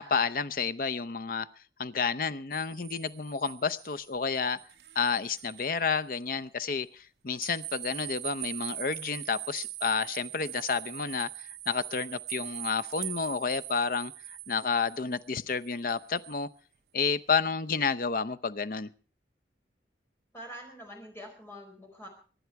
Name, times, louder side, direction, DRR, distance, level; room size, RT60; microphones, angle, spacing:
voice 1, 0.0-1.5 1.8-4.6 5.0-16.5 16.9-18.9, left 5 dB, 50° left, 14 dB, 0.6 m, -30 dB
sound 1, 2.5-5.7 6.1-6.2 7.4-16.4, right 15 dB, 65° right, 0.7 m, -42 dB
voice 2, 20.3-22.1, equal, 15° left, 2 dB, 4.8 m, -45 dB
24.0 x 10.5 x 4.7 m, 0.39 s
head